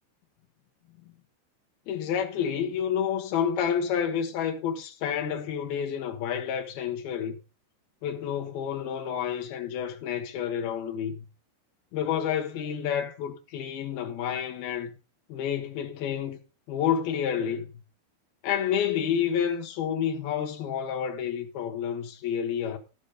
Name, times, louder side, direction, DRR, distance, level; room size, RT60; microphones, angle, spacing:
voice 1, 1.9-7.4 8.0-11.3 11.9-15.0 15.3-16.4 16.7-17.7 18.4-22.8, left 8 dB, 65° left, 2.7 m, -29 dB
15.0 x 6.3 x 5.1 m
omnidirectional pair, 5.9 m